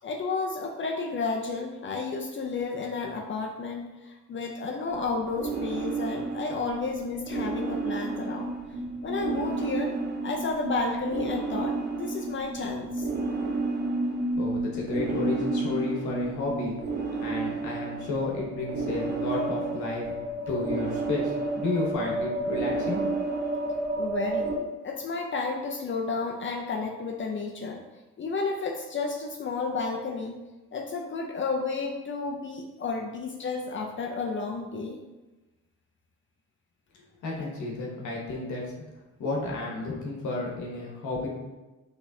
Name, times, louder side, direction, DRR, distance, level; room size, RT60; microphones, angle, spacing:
voice 1, 0.0-8.5 9.0-9.9 10.2-13.1 24.0-24.6 24.8-27.8 28.2-30.4 30.7-35.0, left 4 dB, 40° left, 1 dB, 0.5 m, -32 dB
sound 1, 4.9-24.6, right 3 dB, 35° right, 0.8 m, -31 dB
voice 2, 14.4-16.8 17.2-20.1 20.5-23.0 37.2-38.9 39.2-41.3, left 2 dB, 75° left, -2 dB, 1.2 m, -32 dB
5.7 x 3.2 x 2.8 m, 1.1 s
cardioid pair, 90°, 30 cm